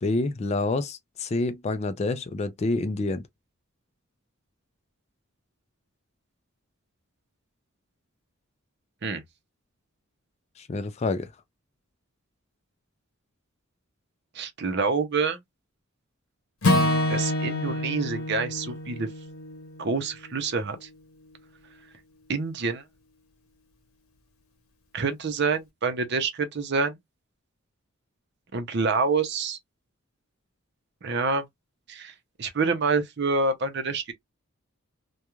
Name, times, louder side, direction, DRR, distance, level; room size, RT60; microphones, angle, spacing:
voice 1, 0.0-3.2 10.6-11.3, left 2 dB, 30° left, 0.3 m, -28 dB
voice 2, 14.3-15.4 17.1-19.1 19.8-20.9 22.3-22.8 24.9-27.0 28.5-29.6 31.0-31.5 31.9-32.1 32.4-34.1, right 4 dB, 55° right, 0.6 m, -27 dB
Acoustic guitar / Strum, 16.6-20.9, left 1 dB, 90° left, 0.8 m, -27 dB
2.3 x 2.3 x 2.9 m
head